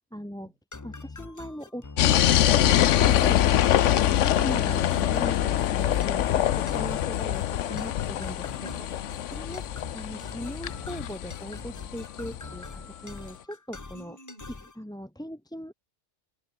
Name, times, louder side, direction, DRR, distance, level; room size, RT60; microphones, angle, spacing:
voice 1, 0.1-0.5 0.8-3.4 3.9-8.5 9.3-14.2 14.8-15.7, equal, 5° left, 1.2 m, -39 dB
sound 1, 0.7-14.8, left 3 dB, 20° left, 0.6 m, -44 dB
sound 2, 2.0-12.7, left 11 dB, 80° left, 1.0 m, -24 dB
sound 3, 3.3-3.8 4.9-5.1 5.9-6.3 6.7-6.8 7.5-8.1, left 5 dB, 35° left, 1.1 m, -44 dB
voice 2, 8.6-9.3 13.9-14.6, right 1 dB, 45° right, 7.2 m, -50 dB
omnidirectional pair, 1.2 m